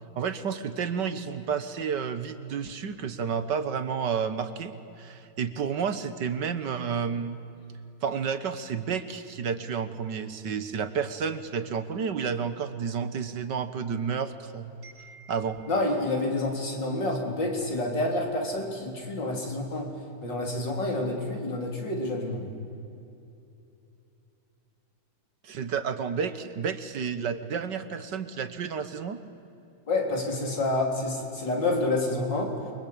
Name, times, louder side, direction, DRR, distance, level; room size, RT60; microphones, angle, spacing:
voice 1, 0.2-7.4 8.0-15.7 25.4-29.2, right 6 dB, 60° right, 11 dB, 1.7 m, -31 dB
voice 2, 15.7-19.9 20.2-22.5 29.9-32.5, left 2 dB, 55° left, 1 dB, 4.5 m, -28 dB
29.0 x 23.5 x 8.7 m, 2.8 s
omnidirectional pair, 2.4 m